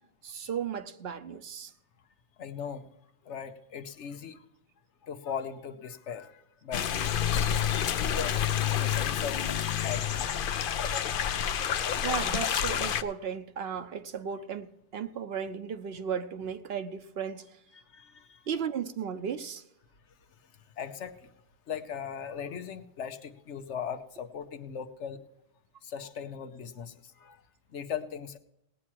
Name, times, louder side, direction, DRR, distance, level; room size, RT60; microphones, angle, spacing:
voice 1, 0.2-1.7 12.0-17.5 18.5-19.6, right 7 dB, 65° right, 1.0 m, -35 dB
voice 2, 2.4-2.8 3.3-4.4 5.0-6.8 7.4-8.4 8.8-10.3 10.9-11.2 17.7-18.4 20.8-21.1 21.7-25.2 25.8-27.4 27.7-28.4, left 7 dB, 90° left, 1.2 m, -39 dB
sound 1, 6.7-13.0, left 9 dB, 60° left, 0.7 m, -29 dB
18.5 x 8.6 x 4.6 m
omnidirectional pair, 1.2 m